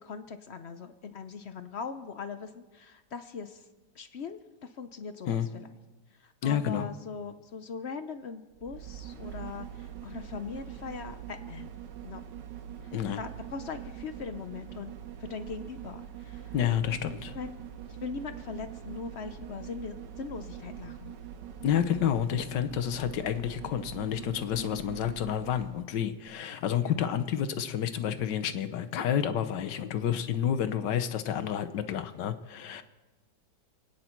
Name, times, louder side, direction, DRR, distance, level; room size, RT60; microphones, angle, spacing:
voice 1, 0.0-3.6 3.9-5.7 6.2-11.7 12.0-12.2 12.8-14.9 15.2-16.5 17.3-17.6 18.0-21.2 24.6-24.8 26.8-26.9, left 5 dB, 60° left, 10 dB, 0.7 m, -40 dB
voice 2, 6.4-6.9 12.9-13.2 16.5-17.4 21.6-32.8, left 9 dB, 80° left, 11 dB, 1.5 m, -29 dB
sound 1, 8.5-25.9 26.3-26.4, right 10 dB, 80° right, 1.6 m, -43 dB
28.0 x 9.6 x 4.5 m, 1.2 s
omnidirectional pair, 1.9 m